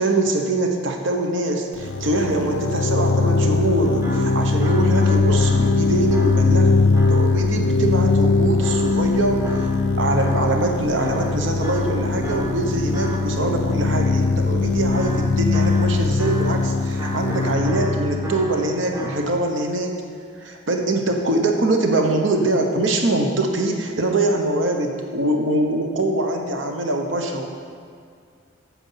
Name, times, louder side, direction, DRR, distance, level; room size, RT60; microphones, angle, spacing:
voice 1, 0.0-9.7 10.0-20.0 20.3-27.5, right 2 dB, 70° right, 3 dB, 1.1 m, -23 dB
sound 1, 1.8-19.3, left 3 dB, 65° left, 0.5 m, -21 dB
sound 2, 3.8-7.6 8.6-10.7 11.0-13.7 14.9-19.2, right 1 dB, 15° right, 0.8 m, -35 dB
sound 3, 5.1-15.8, right 1 dB, 45° right, 2.7 m, -37 dB
9.6 x 7.5 x 5.7 m, 2.2 s
head